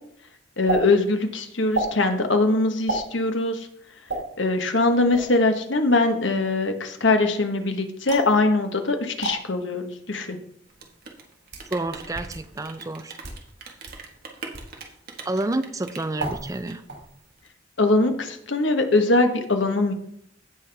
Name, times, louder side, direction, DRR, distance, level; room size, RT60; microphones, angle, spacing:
voice 1, 0.6-3.7 4.4-10.4 17.8-19.9, left 2 dB, 75° left, 6 dB, 1.2 m, -22 dB
sound 1, 0.7-0.8 1.7-1.9 2.9-3.1 4.1-4.2 5.1-5.4 8.1-8.4 9.2-9.4 10.3-10.4 11.2-11.7 12.3-12.4 13.1-13.4 13.9-14.0 14.5-14.7 16.2-16.6 16.9-17.3, right 2 dB, 75° right, 4.3 m, -29 dB
Rain, 10.6-17.5, right 4 dB, 50° right, 1.5 m, -42 dB
voice 2, 11.7-13.2 15.3-16.8, right 2 dB, 20° right, 10 dB, 0.5 m, -29 dB
16.0 x 5.7 x 3.4 m, 0.71 s
head